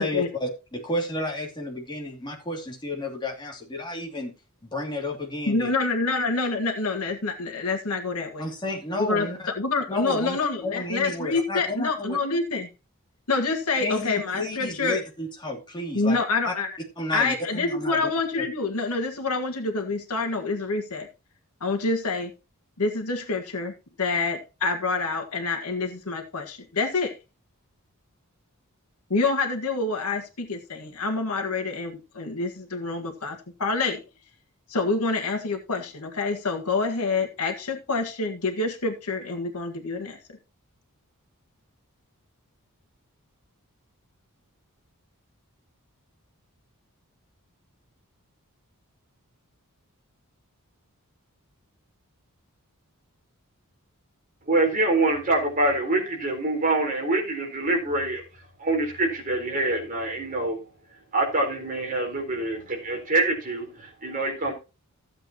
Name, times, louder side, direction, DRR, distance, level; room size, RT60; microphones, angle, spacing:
voice 1, 0.0-4.3 4.7-5.7 8.4-9.4 9.9-12.2 13.8-16.5 17.0-18.4, left 2 dB, 20° left, 0 dB, 2.7 m, -32 dB
voice 2, 5.5-8.5 9.0-12.7 13.3-15.0 15.9-16.7 17.1-21.1 21.6-22.3 22.8-27.2 29.1-34.0 34.7-40.2, left 3 dB, 80° left, 4 dB, 1.7 m, -27 dB
voice 3, 54.5-58.2 58.6-60.6 61.1-64.5, right 2 dB, 40° right, 1 dB, 4.0 m, -25 dB
15.0 x 8.0 x 2.9 m, 0.29 s
head